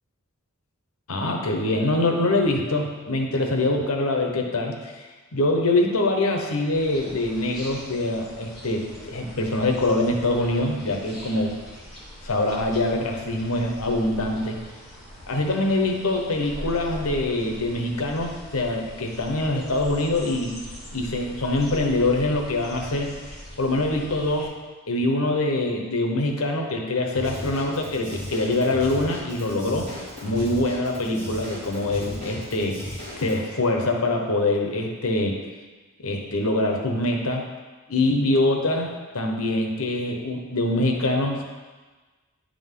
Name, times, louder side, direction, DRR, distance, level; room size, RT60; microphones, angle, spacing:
voice 1, 1.1-4.9 5.3-11.5 12.2-14.6 15.3-20.6 20.9-23.1 23.6-24.5 24.9-29.9 30.2-35.4 36.0-37.5 37.9-41.4, left 2 dB, 80° left, 2 dB, 1.0 m, -24 dB
sound 1, 6.7-24.5, equal, ahead, 2.0 m, -41 dB
Drum kit / Drum, 27.1-33.4, left 1 dB, 55° right, 2.4 m, -36 dB
10.0 x 3.9 x 3.7 m, 1.3 s
head